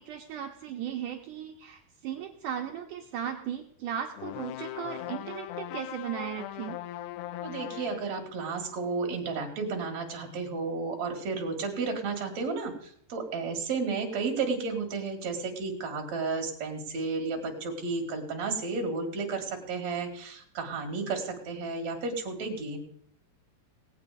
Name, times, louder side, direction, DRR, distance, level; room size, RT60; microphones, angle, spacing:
voice 1, 0.0-6.8, right 9 dB, 75° right, 3 dB, 1.9 m, -36 dB
sound 1, 4.2-8.1, left 14 dB, 85° left, 2.8 m, -39 dB
voice 2, 7.4-22.8, right 4 dB, 50° right, 3 dB, 2.9 m, -32 dB
18.5 x 8.5 x 5.0 m, 0.66 s
omnidirectional pair, 4.7 m